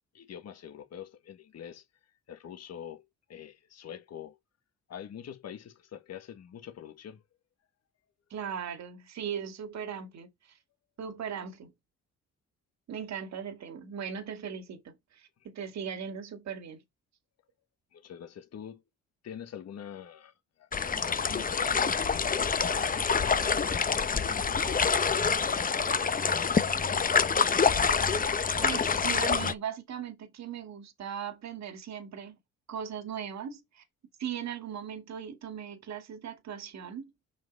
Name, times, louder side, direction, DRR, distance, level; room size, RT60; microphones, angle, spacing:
voice 1, 0.1-1.9 2.3-4.4 4.9-7.2 17.9-18.8 19.2-22.0 22.6-23.4 23.7-26.7, left 9 dB, 60° left, 1.6 m, -46 dB
voice 2, 8.3-10.6 11.0-11.7 12.9-16.8 28.6-32.4 32.7-33.8 34.2-37.1, right 8 dB, 65° right, 2.0 m, -38 dB
sound 1, 20.7-29.5, left 5 dB, 30° left, 0.9 m, -26 dB
7.4 x 5.5 x 4.1 m
cardioid pair, 90°, 30 cm